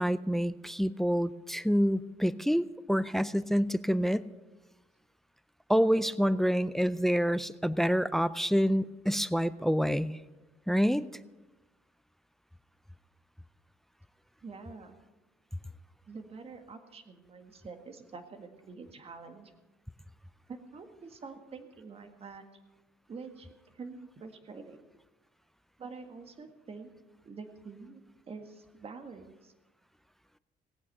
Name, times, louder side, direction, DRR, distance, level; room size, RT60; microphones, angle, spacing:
voice 1, 0.0-4.3 5.7-10.1 10.7-11.1, equal, ahead, 17 dB, 0.4 m, -27 dB
voice 2, 14.4-15.0 16.1-19.5 20.5-22.4 23.1-24.9 25.8-26.9 27.2-28.0 28.3-29.5, right 4 dB, 35° right, 7 dB, 1.8 m, -46 dB
18.0 x 8.6 x 6.6 m, 1.1 s
cardioid pair, 110°, 17 cm